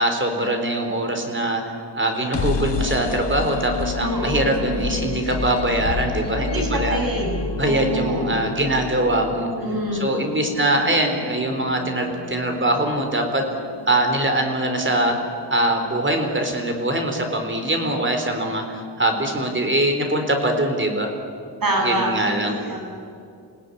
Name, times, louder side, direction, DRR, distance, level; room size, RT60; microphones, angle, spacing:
voice 1, 0.0-7.0 7.5-9.5 9.9-13.4 13.9-15.2 15.5-21.1 21.8-22.5, right 1 dB, 30° right, 4 dB, 4.0 m, -22 dB
sound 1, 2.1-15.9, left 4 dB, 75° left, 1.7 m, -31 dB
voice 2, 4.0-4.7 6.4-8.2 9.6-10.1 21.6-22.8, right 1 dB, 55° right, 0 dB, 7.6 m, -26 dB
27.5 x 17.5 x 10.0 m, 2.4 s
wide cardioid pair, 130°, 42 cm